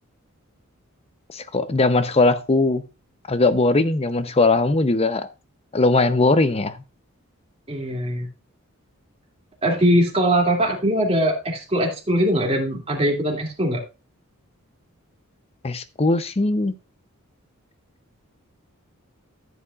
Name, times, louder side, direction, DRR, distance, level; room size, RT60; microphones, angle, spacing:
voice 1, 1.3-2.8 3.3-5.3 5.7-6.8 15.6-16.7, left 3 dB, 30° left, 0.7 m, -19 dB
voice 2, 7.7-8.3 9.6-13.8, equal, 30° right, 2.5 m, -21 dB
14.0 x 8.0 x 2.4 m
head